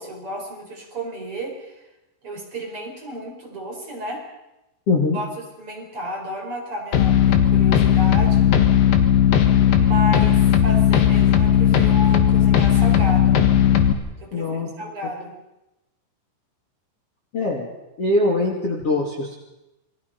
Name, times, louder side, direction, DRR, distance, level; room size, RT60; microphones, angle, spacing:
voice 1, 0.0-1.9 2.2-4.2 5.1-8.6 9.7-13.5 14.2-15.3, equal, 30° right, 0 dB, 5.1 m, -32 dB
voice 2, 4.9-5.2 14.3-14.7 17.3-17.7 18.0-19.4, left 2 dB, 35° left, -1 dB, 3.1 m, -22 dB
sound 1, 6.9-13.9, left 9 dB, 60° left, 3.1 m, -16 dB
27.5 x 22.5 x 5.5 m, 0.95 s
omnidirectional pair, 5.2 m